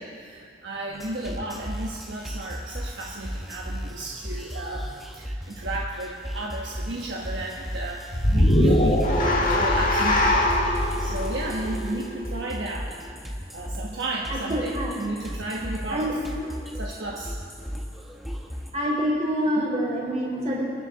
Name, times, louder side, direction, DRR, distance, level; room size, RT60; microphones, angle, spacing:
voice 1, 0.0-4.9 5.1-10.6 11.0-13.0 13.5-16.2 16.7-17.3 19.5-19.7, right 2 dB, 65° right, -2 dB, 1.2 m, -33 dB
sound 1, 0.9-18.7, equal, ahead, 1.0 m, -36 dB
sound 2, 8.1-12.5, left 1 dB, 45° left, 1.6 m, -22 dB
voice 2, 14.3-14.9 15.9-16.1 18.7-20.6, equal, 35° right, -4 dB, 4.1 m, -26 dB
27.0 x 10.0 x 4.0 m, 2.2 s
head